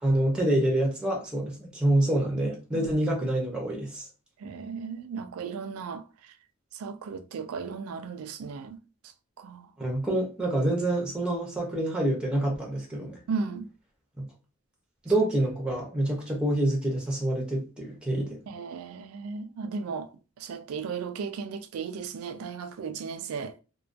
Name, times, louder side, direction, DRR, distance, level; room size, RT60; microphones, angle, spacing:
voice 1, 0.0-4.1 9.8-13.2 14.2-14.3 15.0-18.4, right 1 dB, 5° right, 0.6 m, -27 dB
voice 2, 4.4-6.0 6.8-8.8 9.4-9.7 13.3-13.7 18.5-20.1 20.4-23.5, right 5 dB, 80° right, 0.3 m, -35 dB
2.2 x 2.2 x 2.5 m
head